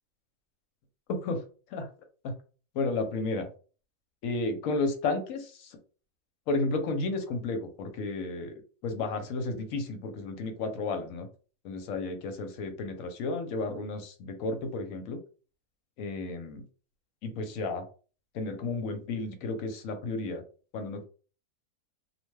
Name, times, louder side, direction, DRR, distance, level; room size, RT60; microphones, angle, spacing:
voice 1, 1.1-1.4 1.7-1.9 2.2-2.3 2.7-3.5 4.2-5.8 6.5-8.5 8.8-11.3 11.6-15.2 16.0-16.6 17.2-17.8 18.3-20.4 20.7-21.0, left 3 dB, 70° left, 6 dB, 1.0 m, -32 dB
2.5 x 2.1 x 3.1 m, 0.38 s
omnidirectional pair, 1.5 m